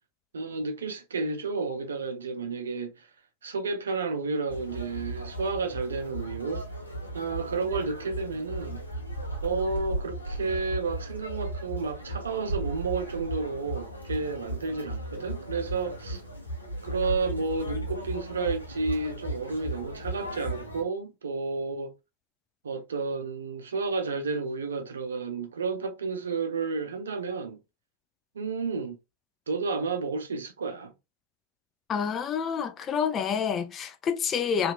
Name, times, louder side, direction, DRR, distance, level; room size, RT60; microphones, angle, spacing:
voice 1, 0.3-3.1 3.4-6.6 7.1-8.8 9.4-16.2 16.8-21.9 22.6-27.6 28.3-29.0 29.5-30.9, right 4 dB, 70° right, 0.5 m, -31 dB
Conversation, 4.5-20.8, right 1 dB, 85° left, 0.7 m, -36 dB
voice 2, 31.9-34.7, left 7 dB, 25° left, 0.3 m, -28 dB
2.8 x 2.4 x 2.3 m
figure-of-eight pair, 90°, 0 cm